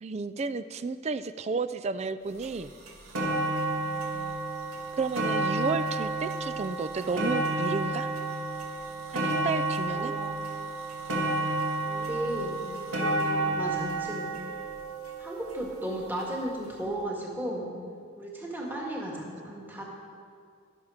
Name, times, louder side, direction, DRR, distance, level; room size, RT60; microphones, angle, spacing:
voice 1, 0.0-2.7 5.0-8.1 9.1-10.1, right 4 dB, 30° right, 14 dB, 0.3 m, -32 dB
sound 1, 2.4-2.5 2.9-16.0 16.8-16.9, right 2 dB, 90° right, 2.0 m, -31 dB
voice 2, 9.8-10.3 11.8-12.6 12.9-14.4 15.2-17.7 18.2-19.8, right 1 dB, 10° right, -3 dB, 1.9 m, -35 dB
21.5 x 7.4 x 5.0 m, 2.2 s
head